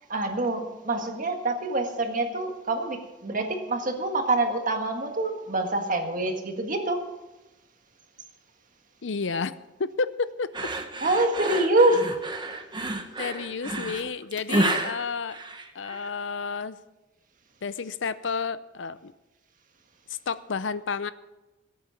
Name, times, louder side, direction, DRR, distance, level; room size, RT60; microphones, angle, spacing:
voice 1, 0.1-7.1 11.0-12.2, right 2 dB, 45° right, 4 dB, 1.7 m, -25 dB
voice 2, 9.0-9.5 9.8-10.7 13.2-15.4 15.7-16.8 17.6-19.1 20.1-21.1, left 5 dB, 80° left, 15 dB, 0.6 m, -31 dB
sound 1, 10.5-16.1, right 2 dB, 25° right, 1.1 m, -30 dB
17.0 x 8.5 x 5.8 m, 1.0 s
head